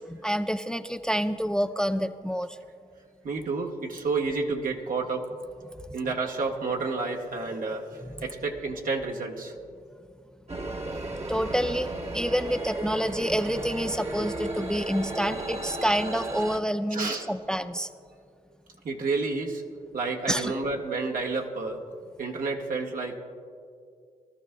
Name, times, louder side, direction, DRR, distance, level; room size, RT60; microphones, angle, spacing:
voice 1, 0.2-2.6 8.0-8.1 11.3-17.9 20.3-20.5, equal, 5° left, 8 dB, 0.5 m, -28 dB
voice 2, 3.2-5.3 5.9-9.5 10.8-10.9 15.3-15.5 16.9-17.3 18.8-19.6 19.9-21.9 22.2-23.2, right 3 dB, 65° right, 1 dB, 1.4 m, -30 dB
sound 1, 10.5-16.6, right 2 dB, 45° right, 1.3 m, -34 dB
22.5 x 13.0 x 2.3 m, 2.3 s
supercardioid pair, 45°, 16 cm